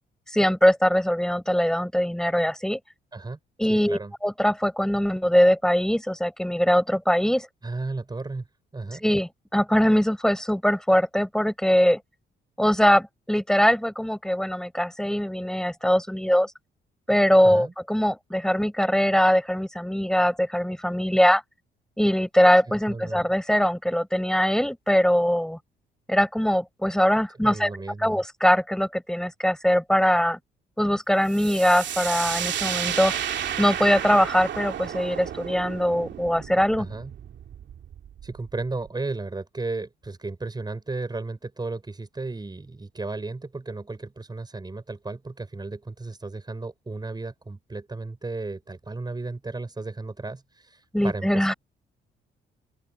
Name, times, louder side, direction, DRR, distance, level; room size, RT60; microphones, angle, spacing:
voice 1, 0.3-2.8 3.6-7.5 9.0-12.0 12.6-16.5 17.1-21.4 22.0-25.6 26.1-27.7 28.0-30.4 30.8-33.1 33.6-36.9 50.9-51.5, equal, 5° left, 7.5 m, -22 dB
voice 2, 3.1-4.1 7.6-8.4 8.7-9.0 17.4-17.7 22.9-23.3 27.4-28.2 36.8-37.1 38.2-51.5, right 3 dB, 20° right, 4.9 m, -34 dB
sound 1, 31.3-38.9, right 9 dB, 65° right, 2.5 m, -32 dB
open air
cardioid pair, 90°, 20 cm